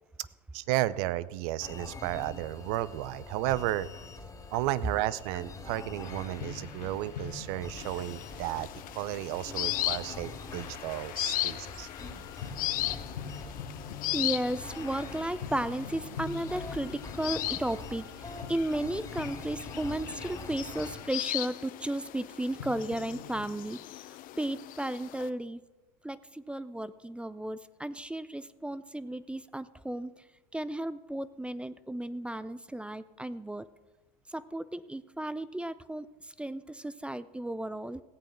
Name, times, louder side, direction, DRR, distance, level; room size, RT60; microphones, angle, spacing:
voice 1, 0.5-3.9 4.5-8.7 8.9-11.9, right 15 dB, 60° right, 19 dB, 0.6 m, -33 dB
sound 1, 1.6-21.0, left 3 dB, 15° left, 2.2 m, -45 dB
sound 2, 6.0-23.7, left 7 dB, 80° left, 1.4 m, -46 dB
sound 3, 7.8-25.3, left 15 dB, 40° left, 0.6 m, -38 dB
voice 2, 14.1-25.6 26.0-30.2 30.5-33.7 34.3-38.0, right 1 dB, 5° right, 16 dB, 0.4 m, -34 dB
16.5 x 8.5 x 5.7 m, 1.1 s
hypercardioid pair, 95°, 21 cm